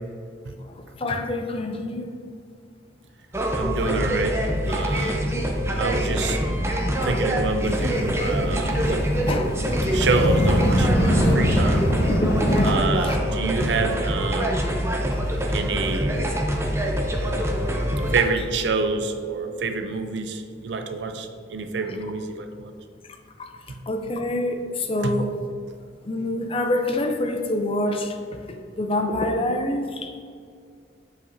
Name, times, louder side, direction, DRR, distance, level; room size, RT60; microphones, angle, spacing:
voice 1, 1.0-2.1 3.9-4.1 5.1-5.2 6.9-7.0 9.3-9.4 11.9-12.8 13.0-13.2 17.2-17.3 23.4-23.5 23.9-25.3 26.1-30.1, left 1 dB, 30° left, 5 dB, 0.5 m, -26 dB
sound 1, 3.3-18.2, equal, 15° right, 0.6 m, -25 dB
voice 2, 3.5-5.3 5.7-6.4 6.8-9.1 9.9-11.9 12.6-14.7 15.5-16.2 18.1-22.7 23.7-23.8 25.0-25.2, right 3 dB, 80° right, 7 dB, 0.6 m, -27 dB
sound 2, 7.6-12.8, equal, 80° left, 0.9 m, -24 dB
7.3 x 5.7 x 2.6 m, 2.2 s
head